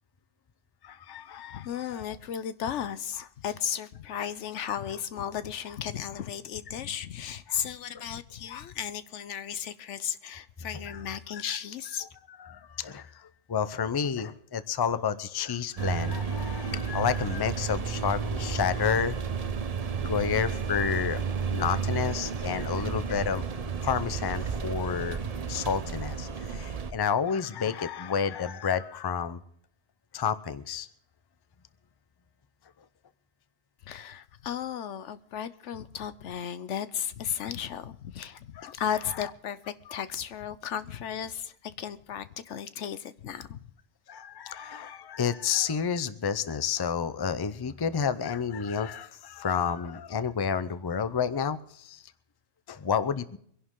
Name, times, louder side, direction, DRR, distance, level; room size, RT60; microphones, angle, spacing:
voice 1, 0.8-2.0 10.9-11.0 11.5-11.6 12.4-19.3 20.0-21.2 21.5-23.4 23.8-25.2 25.5-29.4 30.1-30.9 38.6-38.7 44.1-52.0 52.7-53.4, left 7 dB, 30° left, 0.5 m, -30 dB
voice 2, 1.5-12.0 33.8-43.6, left 9 dB, 85° left, 1.1 m, -35 dB
sound 1, 15.8-26.9, right 6 dB, 40° right, 0.7 m, -32 dB
24.0 x 11.0 x 3.7 m
omnidirectional pair, 1.2 m